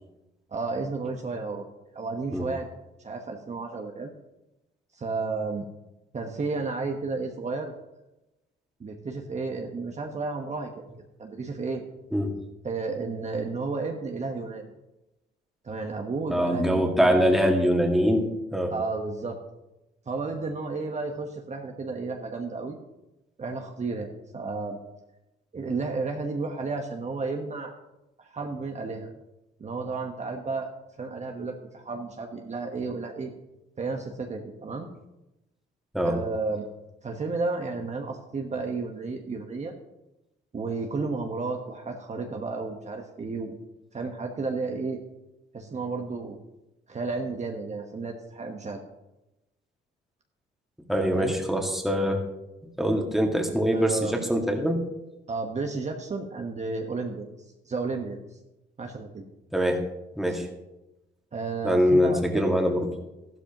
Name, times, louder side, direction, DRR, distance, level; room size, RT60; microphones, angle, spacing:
voice 1, 0.5-1.6 1.9-2.7 3.0-4.1 4.9-5.6 6.1-7.7 8.8-10.9 11.2-11.8 12.6-14.7 15.6-17.3 18.7-19.4 20.1-22.8 23.4-24.8 25.5-27.7 28.2-29.1 29.6-30.7 31.0-33.3 33.8-34.9 36.0-36.6 37.0-39.7 40.5-43.6 43.9-45.0 45.5-46.4 46.9-48.8 51.1-51.4 53.7-54.1 55.3-58.4 58.8-59.3 60.3-60.4 61.3-62.6, right 3 dB, 35° right, 2 dB, 1.2 m, -32 dB
voice 2, 16.3-18.7 35.9-36.2 50.9-52.2 52.8-54.8 59.5-59.8 60.2-60.5 61.6-62.9, equal, ahead, 1 dB, 2.0 m, -23 dB
13.5 x 12.0 x 3.0 m, 0.94 s
cardioid pair, 90°, 20 cm